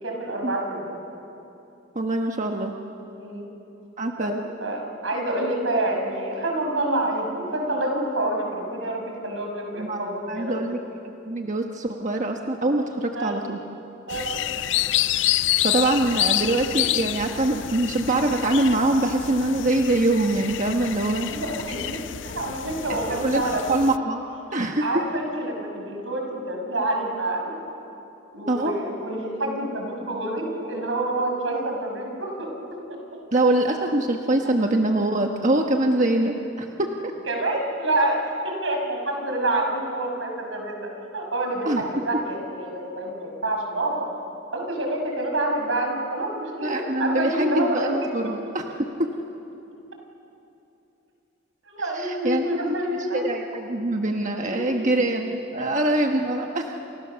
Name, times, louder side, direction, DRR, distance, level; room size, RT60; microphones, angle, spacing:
voice 1, 0.0-1.0 3.2-3.5 4.2-4.3 4.6-10.6 13.1-13.4 14.1-14.4 21.3-21.9 22.2-23.6 24.8-27.5 28.3-32.5 34.4-34.5 37.3-44.1 44.5-47.9 51.7-53.2 54.4-55.0 55.6-55.7, right 1 dB, 80° right, 2 dB, 5.9 m, -27 dB
voice 2, 1.9-2.7 4.0-4.4 9.8-10.8 11.2-13.6 15.6-21.3 22.9-23.0 23.2-23.4 23.7-24.2 24.5-24.8 28.5-28.8 33.3-37.1 41.7-41.8 46.6-48.6 51.9-52.7 53.1-56.6, right 1 dB, 40° right, 2 dB, 1.3 m, -24 dB
sound 1, 14.1-24.0, left 13 dB, 65° left, 0.5 m, -28 dB
29.0 x 29.0 x 6.9 m, 2.9 s
head